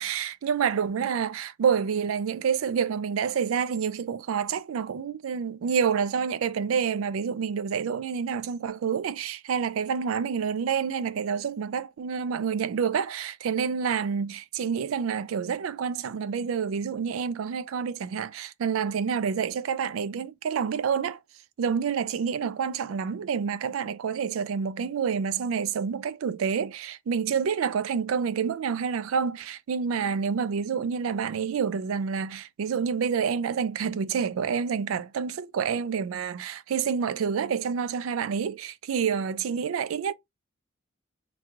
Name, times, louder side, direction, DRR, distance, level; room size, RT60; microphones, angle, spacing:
voice 1, 0.0-21.2 21.6-40.1, right 6 dB, 85° right, 0.4 m, -28 dB
3.3 x 3.0 x 2.4 m
head